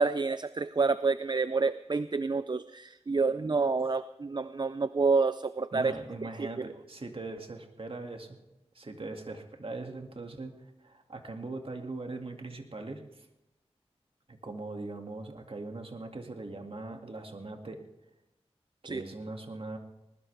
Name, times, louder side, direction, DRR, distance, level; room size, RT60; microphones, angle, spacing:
voice 1, 0.0-5.9 6.4-6.7 18.8-19.0, right 4 dB, 40° right, 14 dB, 0.4 m, -28 dB
voice 2, 5.7-8.4 8.7-13.3 14.3-17.8 18.8-19.8, right 2 dB, 55° right, 4 dB, 2.2 m, -40 dB
20.5 x 20.0 x 3.4 m, 0.96 s
wide cardioid pair, 50°, 11 cm